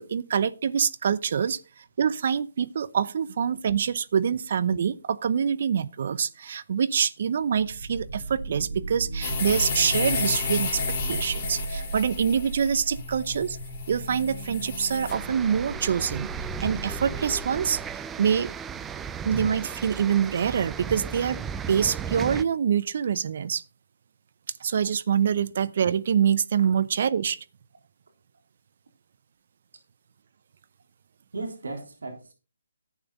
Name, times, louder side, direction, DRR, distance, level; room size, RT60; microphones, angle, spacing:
voice 1, 0.0-1.6 2.0-10.8 11.1-13.6 13.9-16.3 16.6-17.8 18.2-18.5 19.3-21.4 21.7-23.6 24.6-27.4, right 7 dB, 50° right, 0.7 m, -25 dB
sound 1, 7.4-18.0, right 2 dB, 30° right, 6.1 m, -37 dB
sound 2, 9.2-15.1, left 5 dB, 25° left, 3.5 m, -32 dB
sound 3, 15.1-22.4, right 7 dB, 10° right, 0.5 m, -35 dB
voice 2, 31.3-32.3, right 3 dB, 70° right, 3.5 m, -36 dB
11.0 x 9.1 x 4.0 m
figure-of-eight pair, 145°, 0 cm